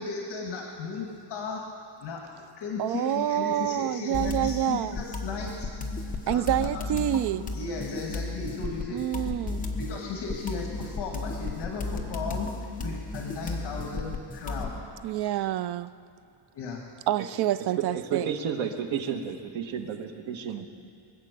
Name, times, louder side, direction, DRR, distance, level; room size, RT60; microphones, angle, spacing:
voice 1, 0.0-1.6 2.0-2.3 2.6-5.7 6.3-6.9 7.5-9.0 9.8-12.5 12.8-14.7 16.5-16.8, left 4 dB, 60° left, 1.9 m, -36 dB
voice 2, 2.8-5.0 6.3-7.5 8.9-9.6 15.0-15.9 17.1-18.3, right 12 dB, 60° right, 0.5 m, -27 dB
sound 1, 4.1-14.8, left 3 dB, 20° left, 0.9 m, -34 dB
voice 3, 17.9-20.6, right 7 dB, 90° right, 1.4 m, -32 dB
22.5 x 8.4 x 6.7 m
cardioid pair, 180°, 46 cm